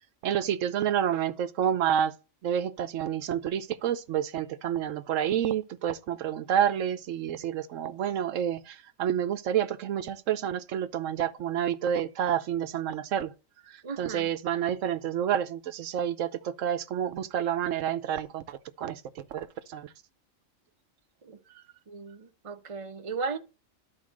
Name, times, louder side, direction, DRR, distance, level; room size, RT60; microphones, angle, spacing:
voice 1, 0.2-2.1 2.4-13.3 14.0-19.0 19.3-19.9, right 9 dB, 75° right, 1.1 m, -29 dB
voice 2, 13.8-14.3 21.2-21.4 21.9-23.4, right 4 dB, 30° right, 0.8 m, -36 dB
11.5 x 4.1 x 6.3 m
omnidirectional pair, 1.4 m